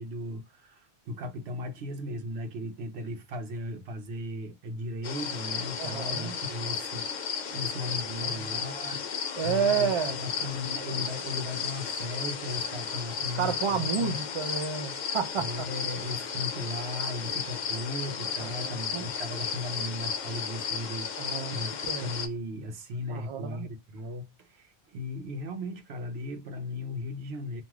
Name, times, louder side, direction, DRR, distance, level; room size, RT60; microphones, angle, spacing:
voice 1, 0.0-14.2 15.4-27.6, left 1 dB, 70° right, 0.9 m, -37 dB
sound 1, 5.0-22.3, left 6 dB, 55° left, 0.5 m, -34 dB
voice 2, 5.8-6.4 8.2-8.5 9.4-10.2 13.3-15.7 18.4-19.1 21.1-22.1 23.1-23.7, right 6 dB, 55° right, 0.3 m, -31 dB
3.0 x 2.6 x 2.2 m
omnidirectional pair, 1.1 m